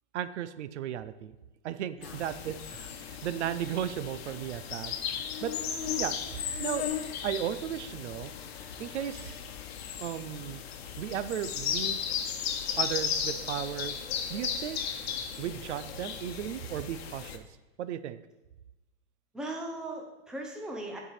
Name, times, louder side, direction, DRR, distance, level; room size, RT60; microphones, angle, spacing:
voice 1, 0.1-1.3 1.6-5.5 6.0-6.9 7.2-8.3 8.8-9.4 10.0-10.6 11.0-12.0 12.8-14.0 14.3-14.8 15.4-17.4 17.8-18.2, right 10 dB, 85° right, 13 dB, 0.7 m, -35 dB
sound 1, 2.0-17.4, left 8 dB, 65° left, 1.1 m, -35 dB
voice 2, 19.3-21.0, right 1 dB, ahead, 1 dB, 0.6 m, -38 dB
10.0 x 4.8 x 4.9 m, 1.1 s
supercardioid pair, 160°, 34 cm